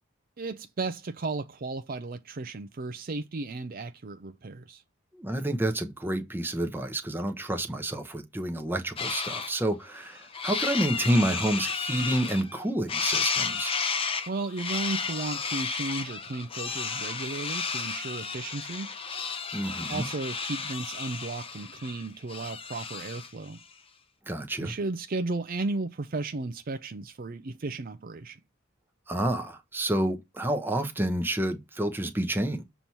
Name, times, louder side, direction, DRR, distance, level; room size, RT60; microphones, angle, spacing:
voice 1, 0.4-4.8 14.3-18.9 19.9-23.6 24.6-28.4, right 3 dB, 45° right, 0.5 m, -34 dB
voice 2, 5.1-13.7 19.5-20.1 24.3-24.7 29.1-32.6, right 1 dB, 10° right, 0.9 m, -29 dB
sound 1, 9.0-9.5 9.9-12.6 12.9-23.4, left 5 dB, 25° left, 0.7 m, -32 dB
6.9 x 3.0 x 5.5 m
head